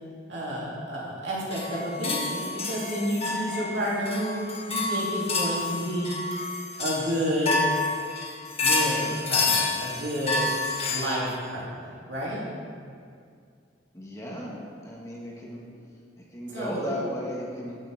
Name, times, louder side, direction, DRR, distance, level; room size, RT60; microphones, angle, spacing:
voice 1, 0.3-4.4 4.7-6.1 6.8-7.6 8.6-10.4 10.9-11.7 12.1-12.4 16.5-16.8, equal, 70° right, -6 dB, 3.0 m, -30 dB
sound 1, 1.5-11.1, left 3 dB, 30° left, 1.4 m, -29 dB
voice 2, 13.9-14.6 14.8-15.6 16.2-17.8, equal, 15° left, -4 dB, 1.8 m, -34 dB
12.5 x 9.5 x 3.6 m, 2.2 s
head